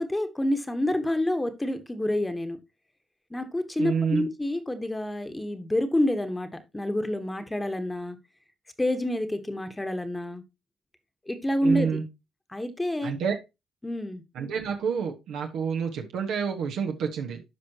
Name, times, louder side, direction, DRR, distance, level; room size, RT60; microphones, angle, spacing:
voice 1, 0.0-2.6 3.3-8.2 8.8-10.4 11.3-12.0 12.5-13.1 13.8-14.2, left 1 dB, 10° left, 1.2 m, -28 dB
voice 2, 3.8-4.3 11.6-12.0 13.0-13.4 14.3-17.4, right 6 dB, 80° right, 1.3 m, -28 dB
12.5 x 4.9 x 2.9 m
cardioid pair, 90°, 0 cm